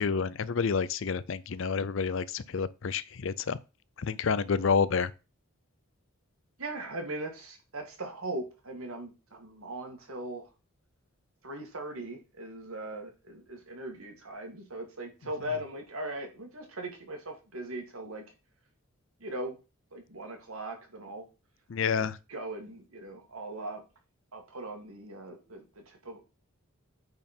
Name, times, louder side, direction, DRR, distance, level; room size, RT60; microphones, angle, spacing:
voice 1, 0.0-3.6 4.0-5.1 21.7-22.2, left 5 dB, 60° left, 0.5 m, -29 dB
voice 2, 6.6-10.4 11.4-18.2 19.2-19.6 19.9-21.3 21.8-23.8 24.3-26.2, right 1 dB, 80° right, 2.1 m, -39 dB
8.7 x 4.3 x 4.4 m
head